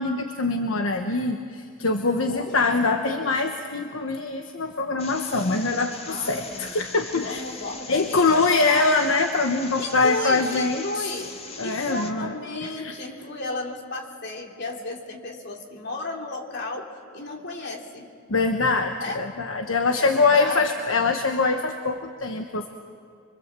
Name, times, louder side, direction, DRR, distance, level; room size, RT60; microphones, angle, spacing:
voice 1, 0.0-7.4 7.9-11.1 11.6-12.3 12.6-12.9 18.3-22.7, left 3 dB, 75° left, 4 dB, 1.2 m, -23 dB
voice 2, 2.3-2.7 6.1-6.8 7.2-8.9 9.8-18.1 19.0-19.2 19.9-20.7, left 2 dB, 60° left, 1 dB, 3.0 m, -34 dB
sound 1, 5.0-12.1, left 4 dB, 30° left, 1.6 m, -41 dB
25.0 x 25.0 x 7.6 m, 2.3 s
head